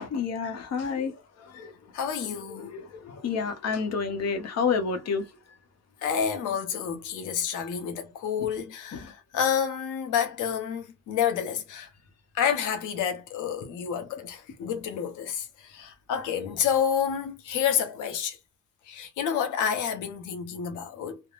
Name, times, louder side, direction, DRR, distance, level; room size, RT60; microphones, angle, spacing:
voice 1, 0.0-1.7 2.6-5.3 8.4-8.5 8.9-9.1, left 5 dB, 60° left, 0.9 m, -30 dB
voice 2, 1.9-2.7 6.0-11.9 12.3-18.4 18.9-21.2, left 8 dB, 85° left, 0.9 m, -29 dB
3.5 x 2.1 x 2.4 m
cardioid pair, 90°, 30 cm